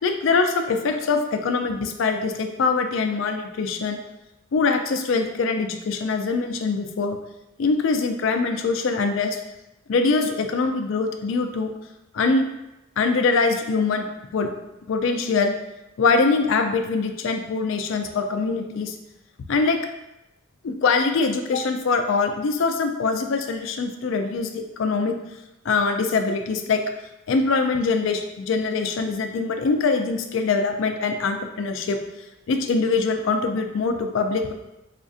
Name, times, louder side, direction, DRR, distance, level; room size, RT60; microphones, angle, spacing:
voice 1, 0.0-4.0 4.5-7.2 7.6-9.4 9.9-11.7 12.1-12.5 13.0-14.1 14.3-14.5 14.9-15.5 16.0-19.0 19.5-19.8 20.6-25.2 25.6-26.8 27.3-32.0 32.5-34.5, left 4 dB, 65° left, 5 dB, 0.4 m, -23 dB
4.9 x 2.4 x 2.5 m, 0.93 s
head